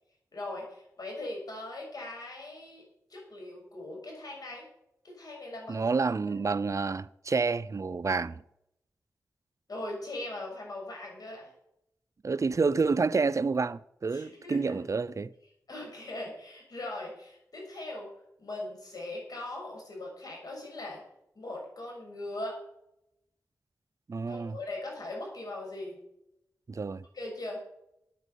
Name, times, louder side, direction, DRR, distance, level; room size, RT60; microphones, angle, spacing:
voice 1, 0.3-2.8 3.1-4.7 5.0-5.9 9.7-11.5 14.1-14.8 15.7-18.1 18.4-21.0 21.3-22.6 24.3-26.0 27.1-27.7, left 2 dB, 70° left, 6.5 m, -40 dB
voice 2, 5.7-8.4 12.2-15.3 24.1-24.6 26.7-27.0, right 4 dB, 50° right, 0.6 m, -29 dB
9.4 x 9.3 x 8.2 m
cardioid pair, 55°, 7 cm